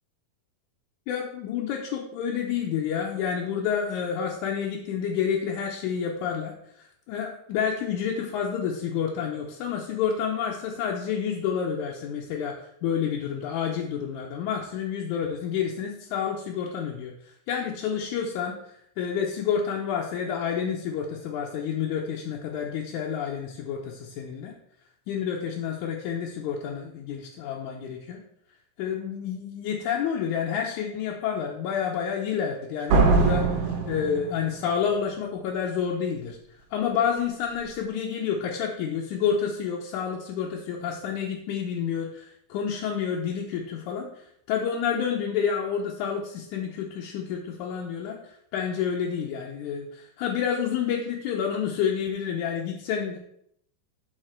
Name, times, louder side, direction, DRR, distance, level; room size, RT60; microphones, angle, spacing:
voice 1, 1.1-6.5 7.1-17.1 17.5-18.6 19.0-24.5 25.1-28.2 28.8-36.4 36.7-44.1 44.5-48.2 48.5-53.2, left 7 dB, 70° left, -2 dB, 2.0 m, -29 dB
Slam, 32.9-34.8, right 4 dB, 65° right, 2.5 m, -22 dB
11.5 x 4.1 x 4.4 m, 0.72 s
omnidirectional pair, 4.1 m